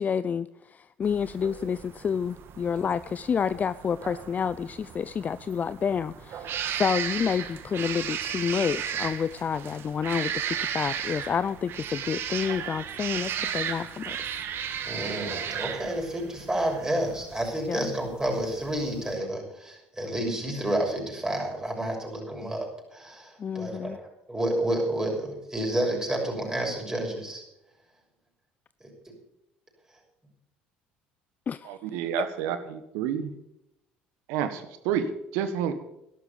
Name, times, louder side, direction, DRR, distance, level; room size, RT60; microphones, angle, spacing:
voice 1, 0.0-14.2 17.7-17.9 23.4-24.0 31.5-31.7, left 7 dB, 35° left, 16 dB, 0.5 m, -29 dB
sound 1, 1.0-19.2, right 9 dB, 55° right, 1.6 m, -35 dB
voice 2, 14.9-27.4 29.0-29.1, right 1 dB, 15° right, 0 dB, 6.5 m, -30 dB
voice 3, 31.6-33.3 34.3-35.7, right 8 dB, 75° right, 10 dB, 1.6 m, -29 dB
12.0 x 12.0 x 7.0 m, 0.83 s
hypercardioid pair, 75°, 5 cm